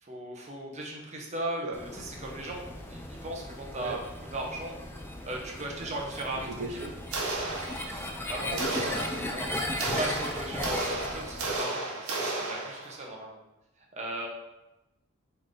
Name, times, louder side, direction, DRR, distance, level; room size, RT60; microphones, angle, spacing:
voice 1, 0.0-4.0 4.3-4.8 5.2-6.5 7.8-9.0 9.3-13.4 14.0-14.3, right 1 dB, 30° right, -1 dB, 0.8 m, -37 dB
sound 1, 1.7-11.6, left 1 dB, 10° left, 0.4 m, -37 dB
voice 2, 6.5-6.9 8.5-9.0, right 3 dB, 65° right, 1 dB, 0.5 m, -37 dB
sound 2, 7.1-8.2 8.6-13.1, right 2 dB, 85° right, 0.9 m, -33 dB
4.4 x 3.2 x 3.7 m, 0.97 s
head